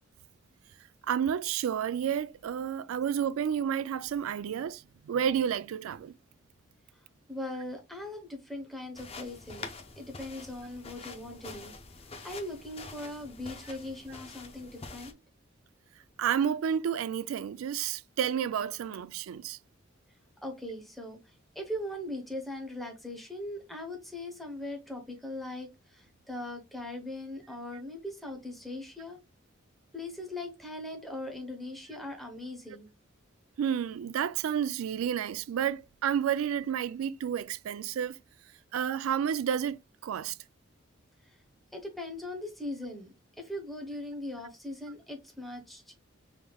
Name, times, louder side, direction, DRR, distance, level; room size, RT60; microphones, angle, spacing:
voice 1, 1.1-6.1 16.2-19.6 33.6-38.2 38.7-40.4, right 8 dB, 85° right, 0.3 m, -30 dB
voice 2, 7.3-9.7 10.0-11.7 12.2-15.1 20.4-29.2 29.9-32.9 41.7-43.1 43.4-45.9, left 1 dB, ahead, 0.8 m, -40 dB
sound 1, 9.0-15.1, left 3 dB, 30° left, 0.5 m, -46 dB
4.7 x 3.5 x 2.3 m
head